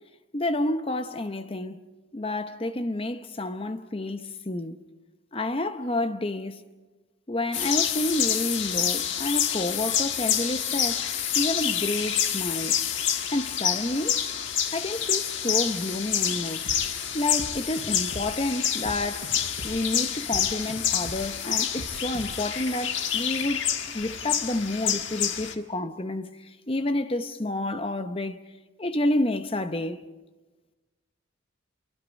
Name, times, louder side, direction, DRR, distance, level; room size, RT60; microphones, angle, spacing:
voice 1, 0.3-1.8 2.1-4.8 5.3-6.6 7.3-11.0 11.3-12.8 13.3-14.2 14.7-16.6 17.1-19.4 19.6-23.7 23.9-26.3 26.7-28.4 28.8-30.0, left 1 dB, 25° left, 0.8 m, -29 dB
sound 1, 7.5-25.5, left 9 dB, 65° left, 1.5 m, -28 dB
sound 2, 16.7-22.5, right 1 dB, 55° right, 6.9 m, -41 dB
27.0 x 23.5 x 5.3 m
head